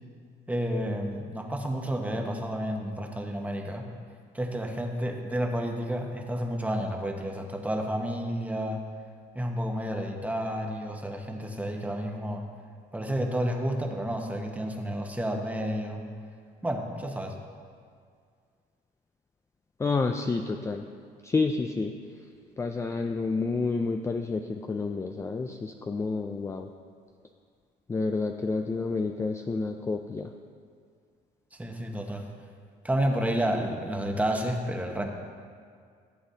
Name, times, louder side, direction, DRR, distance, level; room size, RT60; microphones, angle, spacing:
voice 1, 0.5-3.9 4.3-8.8 9.3-12.4 12.9-16.0 16.6-17.4 31.6-32.3 32.8-35.0, equal, 10° right, 2 dB, 1.0 m, -30 dB
voice 2, 19.8-20.9 21.2-21.9 22.6-26.7 27.9-30.3, left 4 dB, 15° left, 5 dB, 0.4 m, -29 dB
15.0 x 7.9 x 2.8 m, 2.1 s
cardioid pair, 110°, 17 cm